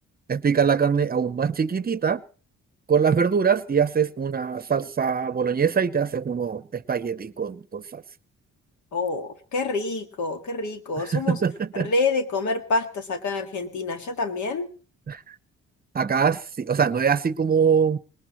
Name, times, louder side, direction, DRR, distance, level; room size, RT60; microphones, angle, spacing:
voice 1, 0.3-2.2 2.9-8.0 11.0-11.9 15.1-15.2 15.9-18.0, right 6 dB, 30° right, 0.8 m, -23 dB
voice 2, 8.9-11.4 11.7-14.7, left 3 dB, 70° left, 2.0 m, -27 dB
20.0 x 19.5 x 3.1 m
cardioid pair, 90°, 30 cm